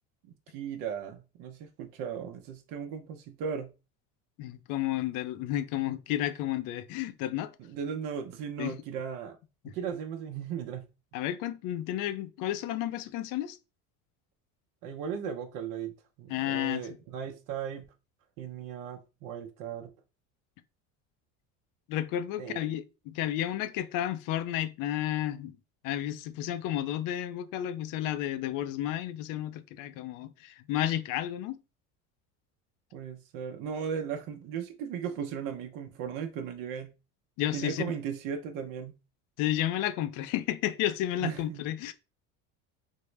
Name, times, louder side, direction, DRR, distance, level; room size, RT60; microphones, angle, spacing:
voice 1, 0.5-3.7 7.6-9.4 9.6-10.9 14.8-17.8 18.4-19.9 22.4-22.6 32.9-36.9 37.5-39.0 41.2-41.7, right 7 dB, 65° right, 0.6 m, -37 dB
voice 2, 4.4-7.5 8.6-8.7 9.6-9.7 11.1-13.6 16.3-16.8 21.9-25.5 25.8-31.6 37.4-37.8 39.4-41.9, left 12 dB, 60° left, 0.5 m, -32 dB
3.6 x 2.0 x 3.1 m
supercardioid pair, 110°, 35 cm